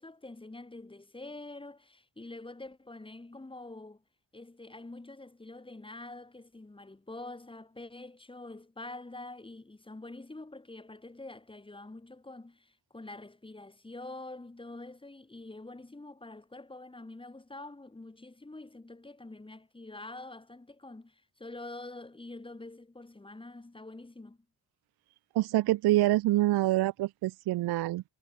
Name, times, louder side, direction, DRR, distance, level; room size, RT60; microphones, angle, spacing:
voice 1, 0.0-4.0 4.3-24.4, left 2 dB, 10° left, 3.4 m, -46 dB
voice 2, 25.3-28.0, right 16 dB, 60° right, 0.5 m, -26 dB
cardioid pair, 145°, 43 cm